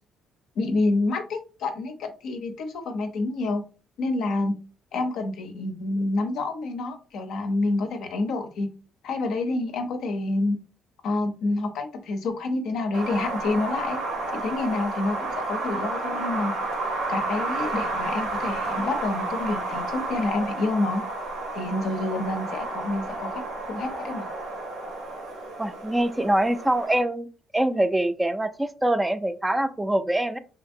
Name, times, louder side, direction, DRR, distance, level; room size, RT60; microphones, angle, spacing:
voice 1, 0.6-3.6 4.0-4.6 4.9-8.7 9.0-10.6 11.0-14.0 14.3-16.5 17.1-21.0 21.5-23.4 23.7-24.3, left 2 dB, 70° left, 6 dB, 0.5 m, -28 dB
Wind, 12.9-27.0, right 2 dB, 90° right, 1.0 m, -31 dB
voice 2, 25.6-27.3 27.5-30.4, right 1 dB, 15° right, 11 dB, 0.3 m, -24 dB
2.8 x 2.5 x 2.6 m, 0.36 s
hypercardioid pair, 55°, 0 cm